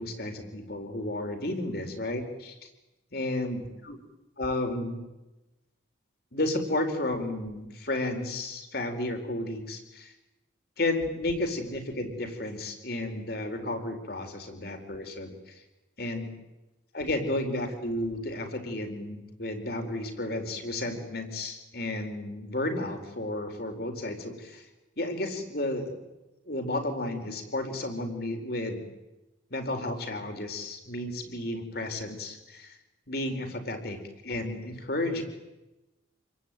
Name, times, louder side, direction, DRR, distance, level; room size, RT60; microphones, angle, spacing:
voice 1, 0.0-2.7 3.1-4.0 4.4-5.0 6.3-10.1 10.8-15.6 16.0-16.3 16.9-24.7 25.0-25.9 26.5-28.8 29.5-32.8 33.1-35.2, left 1 dB, 55° left, 6 dB, 4.6 m, -32 dB
28.0 x 22.0 x 9.2 m, 1.0 s
head